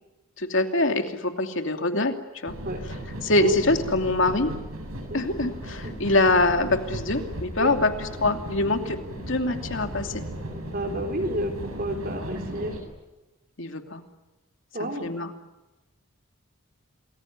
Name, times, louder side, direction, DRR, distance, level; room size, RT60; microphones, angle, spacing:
voice 1, 0.4-2.5 3.2-4.5 5.1-10.2 13.6-14.0 14.8-15.3, left 2 dB, 60° left, 6 dB, 2.7 m, -24 dB
sound 1, 2.5-12.8, equal, 85° right, 7.6 m, -36 dB
voice 2, 10.7-12.7 14.7-15.1, right 1 dB, 40° right, 5 dB, 4.0 m, -30 dB
28.5 x 21.0 x 9.6 m, 1.1 s
head